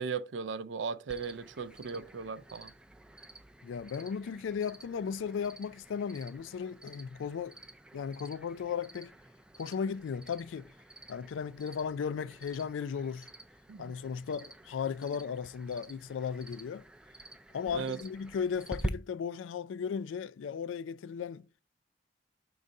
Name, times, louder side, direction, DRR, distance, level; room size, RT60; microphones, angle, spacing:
voice 1, 0.0-2.7 13.7-13.9 17.7-18.0, right 5 dB, 75° right, 0.4 m, -37 dB
Cricket, 1.1-18.9, right 1 dB, 5° right, 0.3 m, -48 dB
voice 2, 3.6-7.6 7.9-9.1 9.6-10.7 11.1-13.3 13.8-16.8 17.5-21.5, left 6 dB, 85° left, 0.3 m, -36 dB
5.4 x 3.9 x 4.7 m
head